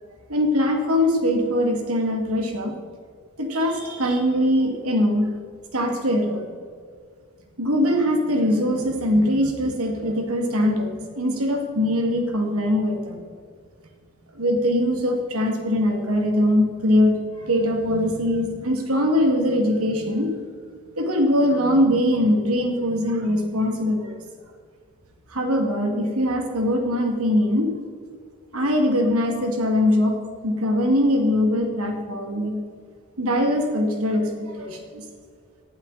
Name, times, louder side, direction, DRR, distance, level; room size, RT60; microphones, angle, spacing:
voice 1, 0.3-2.8 3.4-5.3 5.7-6.5 7.6-13.2 14.3-20.3 21.0-24.2 25.3-27.7 28.5-30.1 30.4-32.6 33.2-35.0, left 1 dB, 80° right, 3 dB, 2.6 m, -22 dB
18.0 x 12.0 x 4.3 m, 2.1 s
head